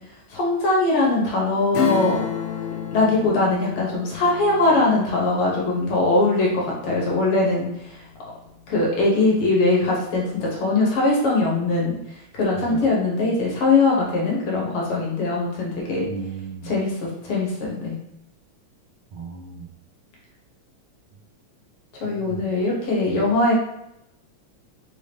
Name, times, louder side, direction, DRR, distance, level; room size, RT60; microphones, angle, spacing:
voice 1, 0.3-2.2 2.9-8.0 8.7-16.1 16.6-18.0 22.0-23.5, left 2 dB, 60° left, -3 dB, 1.7 m, -21 dB
Acoustic guitar / Strum, 1.7-7.9 8.3-8.4, left 9 dB, 80° left, 1.5 m, -31 dB
voice 2, 16.1-16.7 19.1-19.7 22.0-22.5 23.0-23.2, right 5 dB, 80° right, -5 dB, 1.0 m, -35 dB
5.0 x 2.8 x 3.3 m, 0.83 s
omnidirectional pair, 3.3 m